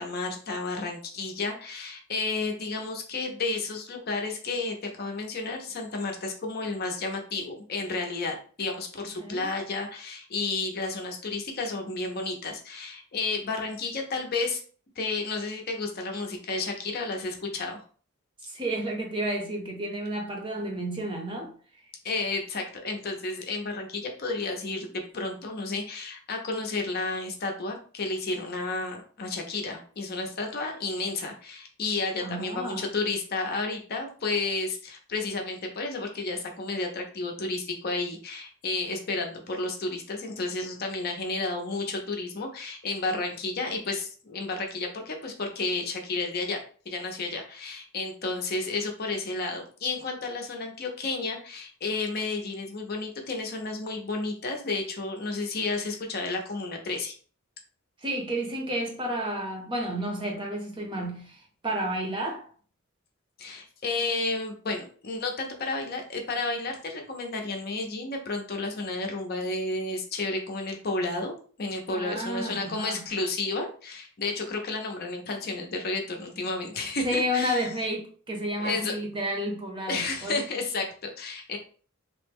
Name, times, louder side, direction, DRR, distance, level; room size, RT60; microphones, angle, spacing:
voice 1, 0.0-14.6 15.0-17.8 22.0-57.1 63.4-77.7 78.6-78.9 79.9-81.6, left 3 dB, 45° left, 0.6 m, -32 dB
voice 2, 9.2-9.5 18.4-21.5 32.2-32.8 58.0-62.5 71.9-73.0 77.0-80.4, right 1 dB, 25° right, 0.7 m, -31 dB
3.3 x 2.1 x 3.4 m
head